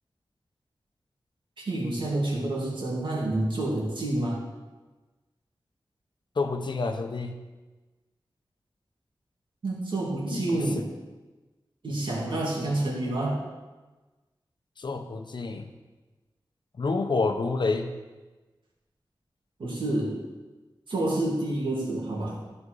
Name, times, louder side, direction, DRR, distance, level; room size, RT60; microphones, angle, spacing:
voice 1, 1.6-4.4 9.6-10.9 11.8-13.4 19.6-20.2 20.9-22.4, right 1 dB, 75° right, -4 dB, 2.7 m, -28 dB
voice 2, 6.4-7.3 10.3-10.8 14.8-15.7 16.8-17.9, left 3 dB, 65° left, 6 dB, 0.9 m, -28 dB
13.5 x 5.3 x 4.8 m, 1.2 s
wide cardioid pair, 100°, 9 cm